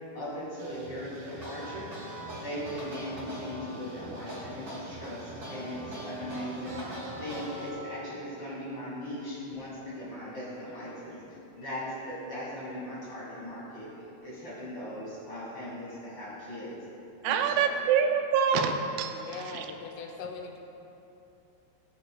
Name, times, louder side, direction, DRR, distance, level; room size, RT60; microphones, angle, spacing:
voice 1, 0.1-1.9 2.4-6.8 7.2-11.2 11.6-13.9 14.2-16.8 17.2-17.6, equal, 45° left, -9 dB, 1.7 m, -39 dB
sound 1, 0.6-7.7, right 2 dB, 65° right, 2.7 m, -47 dB
sound 2, 1.3-8.1, equal, 45° right, 0.9 m, -41 dB
voice 2, 17.2-19.7, right 7 dB, 85° right, 6 dB, 3.2 m, -26 dB
voice 3, 19.1-20.6, left 5 dB, 80° left, 2 dB, 3.3 m, -40 dB
20.0 x 7.1 x 2.3 m, 2.9 s
omnidirectional pair, 6.0 m